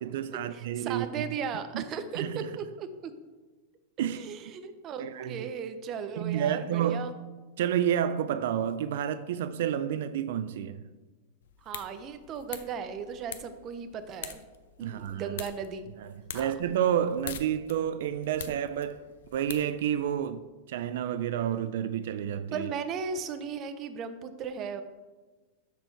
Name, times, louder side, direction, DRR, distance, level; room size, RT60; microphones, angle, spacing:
voice 1, 0.0-1.3 1.7-1.8 2.2-2.5 4.0-4.3 5.0-5.5 6.2-7.2 7.6-10.8 14.8-15.4 16.0-19.0 19.3-22.7, right 9 dB, 65° right, 0.4 m, -30 dB
voice 2, 0.5-3.1 4.1-7.1 11.6-14.4 14.8-15.9 16.3-16.5 22.5-24.8, right 6 dB, 25° right, 0.6 m, -36 dB
sound 1, 11.4-20.3, left 9 dB, 85° left, 0.8 m, -45 dB
13.0 x 4.5 x 4.5 m
supercardioid pair, 165°, 0 cm